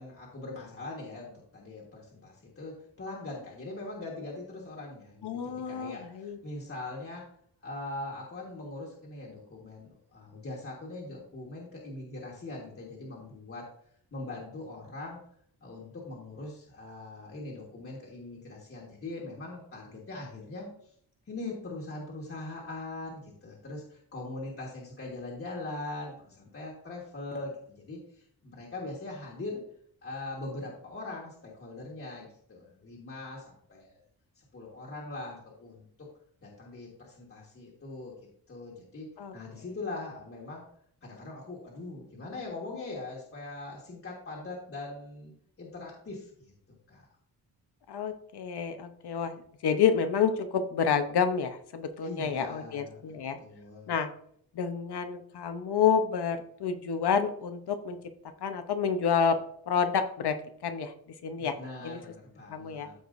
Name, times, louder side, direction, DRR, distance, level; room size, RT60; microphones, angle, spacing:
voice 1, 0.0-7.3 7.6-13.7 14.1-15.2 15.6-20.9 21.3-29.6 30.0-34.0 34.4-36.1 36.4-38.1 38.5-40.6 41.0-45.3 45.6-46.5 46.9-47.1 52.0-53.0 53.4-53.9 61.4-62.9, left 2 dB, 35° left, -4 dB, 1.6 m, -41 dB
voice 2, 5.2-6.4 39.2-39.3 47.9-53.4 53.9-54.1 54.5-58.0 58.4-59.4 59.7-60.4 60.6-60.9 61.2-61.6 61.8-62.0 62.5-62.9, left 7 dB, 80° left, 8 dB, 0.9 m, -29 dB
13.5 x 4.8 x 2.6 m, 0.64 s
wide cardioid pair, 170°, 39 cm